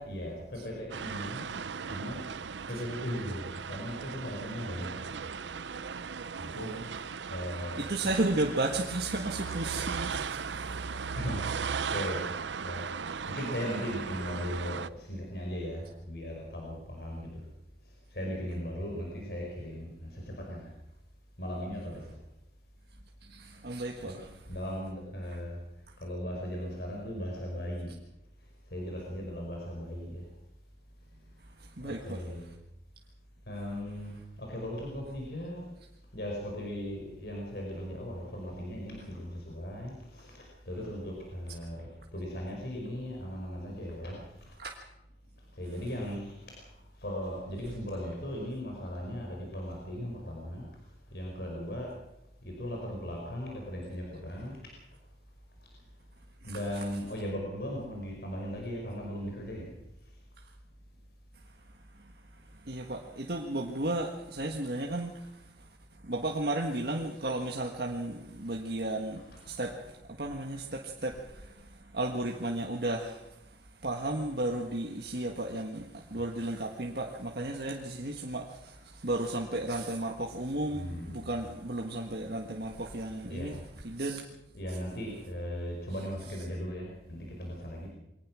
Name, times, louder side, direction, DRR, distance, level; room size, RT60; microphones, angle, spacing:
voice 1, 0.0-1.5 1.9-2.2 2.7-5.2 6.4-6.7 7.3-8.2 11.1-12.2 12.6-12.8 13.3-17.5 17.8-20.7 21.4-22.2 24.0-24.2 24.5-25.6 26.0-27.9 28.7-30.2 31.8-32.5 33.5-35.6 36.1-44.5 45.5-50.6 51.1-51.9 52.4-54.6 56.4-59.7 69.2-69.4 80.7-81.4 83.3-83.6 84.5-87.9, equal, 65° left, -1 dB, 5.2 m, -38 dB
sound 1, 0.9-14.9, right 6 dB, 90° right, 0.7 m, -37 dB
voice 2, 6.3-6.9 7.8-11.2 11.8-11.9 23.2-24.4 31.4-32.5 44.6-44.8 56.4-56.8 61.3-83.6 83.8-84.2, right 2 dB, 60° right, 1 dB, 1.6 m, -34 dB
23.0 x 18.5 x 6.3 m, 0.89 s
head